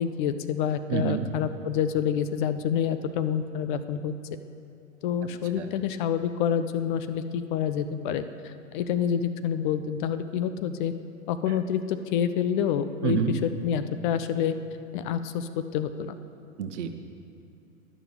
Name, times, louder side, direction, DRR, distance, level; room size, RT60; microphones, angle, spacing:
voice 1, 0.0-4.1 5.0-10.9 11.3-14.5 14.9-16.2, left 8 dB, 40° left, 11 dB, 0.5 m, -28 dB
voice 2, 0.9-1.2 5.6-5.7 11.5-11.6 13.0-13.3 16.6-17.0, right 8 dB, 60° right, 7 dB, 1.0 m, -28 dB
11.0 x 6.1 x 7.0 m, 2.8 s
hypercardioid pair, 105°, 39 cm